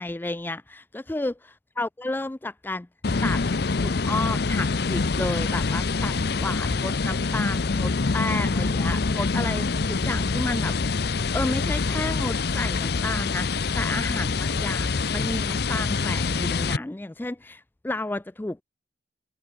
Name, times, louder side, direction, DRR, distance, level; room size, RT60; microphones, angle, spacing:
voice 1, 0.0-2.9 3.2-3.4 3.8-18.6, left 2 dB, 10° left, 0.3 m, -32 dB
sound 1, 3.0-16.8, left 4 dB, 55° left, 0.7 m, -25 dB
head